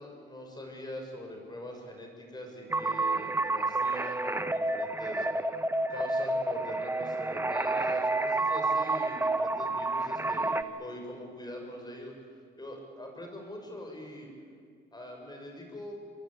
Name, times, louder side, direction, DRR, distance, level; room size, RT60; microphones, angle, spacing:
voice 1, 0.0-5.3 5.9-14.3 14.9-15.9, left 1 dB, 20° left, 2 dB, 6.5 m, -43 dB
sound 1, 2.7-10.6, right 2 dB, 10° right, 1.0 m, -29 dB
26.5 x 22.0 x 8.4 m, 2.1 s
cardioid pair, 90°, 20 cm